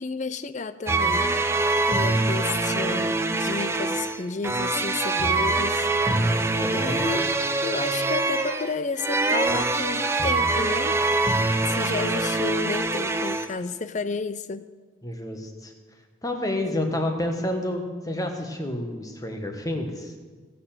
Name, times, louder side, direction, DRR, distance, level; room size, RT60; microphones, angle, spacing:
voice 1, 0.0-1.3 1.9-5.9 6.7-7.3 7.6-11.0 11.7-14.6, left 4 dB, 35° left, 13 dB, 0.5 m, -31 dB
sound 1, 0.9-13.5, right 2 dB, 15° right, 0.6 m, -24 dB
voice 2, 6.5-7.0 15.0-15.7 16.2-20.1, left 1 dB, 15° left, 4 dB, 1.4 m, -29 dB
17.0 x 6.8 x 7.5 m, 1.4 s
head